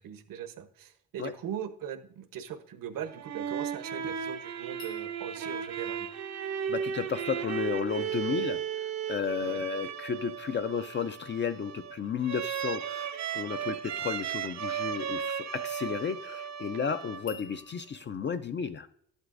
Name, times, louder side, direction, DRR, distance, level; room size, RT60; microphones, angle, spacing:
voice 1, 0.0-6.1 9.4-9.6, right 9 dB, 80° right, 10 dB, 0.9 m, -40 dB
sound 1, 3.0-17.7, right 8 dB, 55° right, 0.6 m, -35 dB
sound 2, 4.8-7.9 17.3-18.1, left 6 dB, 80° left, 1.3 m, -52 dB
voice 2, 6.7-8.6 9.1-18.9, left 6 dB, 35° left, 9 dB, 0.4 m, -33 dB
11.5 x 8.0 x 2.5 m, 0.69 s
cardioid pair, 115°, 33 cm